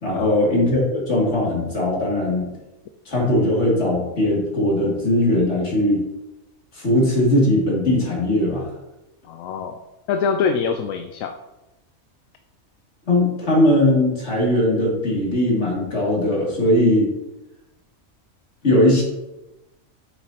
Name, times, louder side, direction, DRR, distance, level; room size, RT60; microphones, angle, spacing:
voice 1, 0.0-2.5 3.1-6.0 6.7-8.7 13.1-17.1 18.6-19.0, left 1 dB, 55° left, -4 dB, 2.8 m, -19 dB
voice 2, 9.3-9.8 10.1-11.3, left 6 dB, 75° left, 7 dB, 1.0 m, -24 dB
8.3 x 7.9 x 2.8 m, 0.99 s
omnidirectional pair, 1.4 m